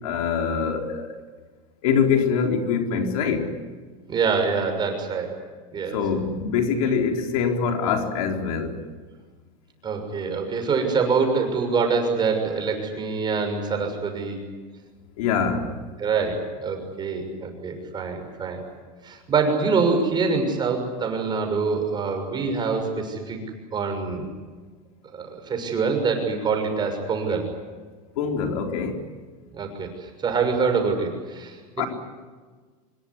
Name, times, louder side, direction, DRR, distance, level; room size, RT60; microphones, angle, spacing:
voice 1, 0.0-1.1 1.8-3.5 5.9-8.8 15.2-15.7 28.2-29.0 31.8-31.9, left 6 dB, 80° left, 4.3 m, -24 dB
voice 2, 4.1-5.4 5.7-6.0 9.8-14.4 16.0-18.6 19.0-23.4 23.7-24.3 25.1-27.5 29.5-31.8, right 4 dB, 25° right, 6.5 m, -25 dB
25.5 x 22.0 x 9.9 m
supercardioid pair, 140°, 18 cm